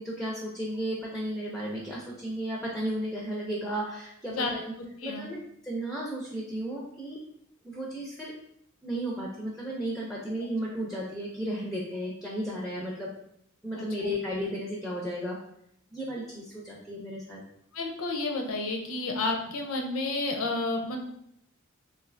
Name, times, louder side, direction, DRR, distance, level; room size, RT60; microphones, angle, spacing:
voice 1, 0.0-4.6 5.0-5.4 5.6-7.2 7.6-8.3 8.8-13.1 13.6-15.4 15.9-17.4, equal, ahead, -4 dB, 0.4 m, -34 dB
voice 2, 4.3-5.3 13.7-14.1 17.7-21.0, left 2 dB, 65° left, 3 dB, 0.5 m, -31 dB
3.1 x 2.6 x 2.5 m, 0.73 s
head